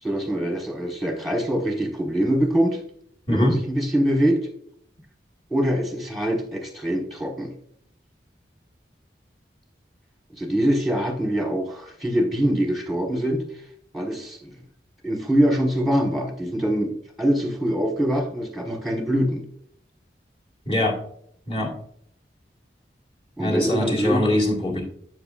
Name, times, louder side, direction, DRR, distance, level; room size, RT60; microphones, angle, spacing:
voice 1, 0.0-2.8 3.3-4.4 5.5-7.5 10.3-13.6 13.9-14.5 15.0-19.4 23.4-24.4, equal, ahead, 1 dB, 1.2 m, -24 dB
voice 2, 20.7-21.0 21.5-21.7 23.4-24.8, left 1 dB, 30° left, -3 dB, 1.6 m, -22 dB
7.9 x 6.8 x 2.4 m, 0.66 s
head